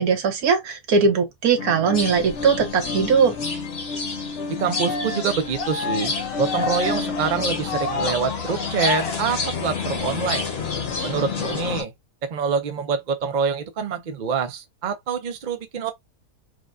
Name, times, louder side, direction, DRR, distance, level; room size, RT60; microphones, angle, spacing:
voice 1, 0.0-3.3, right 5 dB, 75° right, 1.5 m, -20 dB
sound 1, 1.6-11.8, left 6 dB, 65° left, 0.7 m, -33 dB
sound 2, 1.9-11.8, left 3 dB, 45° left, 1.2 m, -31 dB
voice 2, 4.5-6.1 6.4-10.5 11.0-11.9 12.2-15.9, right 6 dB, 60° right, 0.5 m, -26 dB
Cheering, 4.6-10.1, left 4 dB, 90° left, 1.3 m, -31 dB
4.9 x 2.2 x 2.4 m
omnidirectional pair, 1.6 m